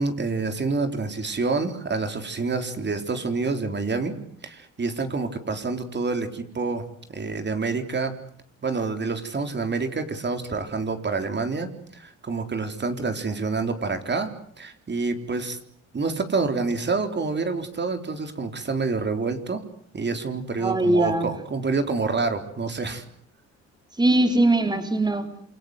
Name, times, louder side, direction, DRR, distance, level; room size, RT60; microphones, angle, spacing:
voice 1, 0.0-4.1 4.4-6.8 7.1-8.1 8.6-14.3 14.6-15.6 15.9-19.6 19.9-23.0, right 4 dB, 35° right, 7 dB, 3.9 m, -27 dB
voice 2, 20.6-21.3 24.0-25.3, right 2 dB, 15° right, 7 dB, 3.7 m, -21 dB
28.0 x 24.0 x 8.0 m, 0.64 s
cardioid pair, 90°, 30 cm